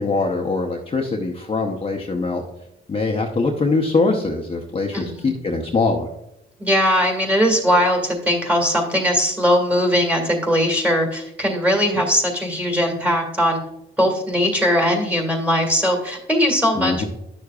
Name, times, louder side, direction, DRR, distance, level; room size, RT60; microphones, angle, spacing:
voice 1, 0.0-2.4 2.9-6.1 16.8-17.0, left 3 dB, 30° left, 1 dB, 0.8 m, -22 dB
voice 2, 4.9-5.3 6.6-13.6 14.0-17.1, equal, 5° right, 3 dB, 2.0 m, -20 dB
10.0 x 6.5 x 2.4 m, 0.84 s
cardioid pair, 90°, 20 cm